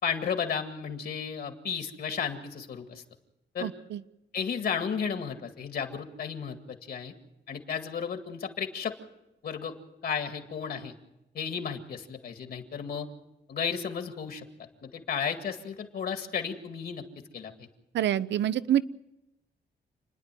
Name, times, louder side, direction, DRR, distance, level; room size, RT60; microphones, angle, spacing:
voice 1, 0.0-3.0 3.5-3.7 4.3-7.1 7.5-9.0 9.4-9.7 10.0-10.9 11.3-13.1 13.5-14.4 14.8-17.0 17.3-17.7, left 7 dB, 60° left, 6 dB, 2.0 m, -33 dB
voice 2, 3.6-4.0 17.9-18.8, right 11 dB, 80° right, 16 dB, 0.7 m, -26 dB
28.5 x 10.5 x 9.1 m, 0.93 s
wide cardioid pair, 175°, 18 cm